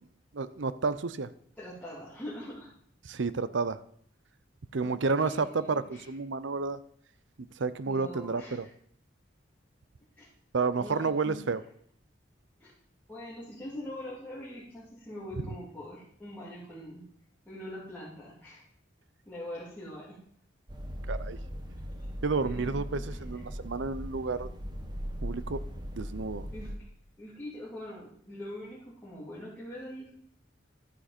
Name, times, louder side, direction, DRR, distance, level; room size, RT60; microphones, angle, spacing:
voice 1, 0.3-1.3 3.0-3.8 4.7-6.8 7.6-8.6 10.5-11.6 21.1-21.4 22.2-24.5 25.2-25.6 26.0-26.5, right 4 dB, 70° right, 15 dB, 0.6 m, -30 dB
voice 2, 1.6-2.7 4.8-6.1 7.8-8.7 10.2-10.3 10.8-11.4 12.6-12.7 13.1-17.1 17.4-18.6 19.2-20.2 22.4-23.4 26.5-26.7 27.2-30.1, left 1 dB, 10° left, -10 dB, 3.0 m, -43 dB
sound 1, 20.7-26.8, equal, 25° right, 1.1 m, -39 dB
12.0 x 9.4 x 4.4 m, 0.62 s
head